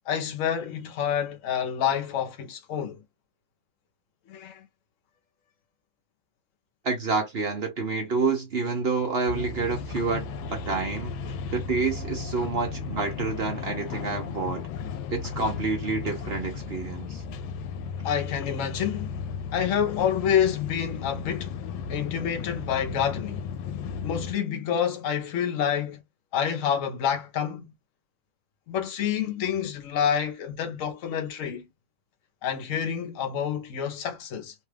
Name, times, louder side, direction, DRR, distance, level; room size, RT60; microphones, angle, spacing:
voice 1, 0.1-3.0 4.3-4.7 18.0-19.2 19.5-21.6 21.9-23.5 24.0-26.0 26.3-27.6 28.7-31.7 32.4-34.5, left 8 dB, 55° left, 0.9 m, -28 dB
voice 2, 6.8-11.1 11.5-14.7 15.1-17.2, right 4 dB, 60° right, 0.6 m, -28 dB
sound 1, 9.3-24.3, left 6 dB, 85° left, 1.3 m, -35 dB
3.2 x 2.3 x 3.3 m
omnidirectional pair, 2.1 m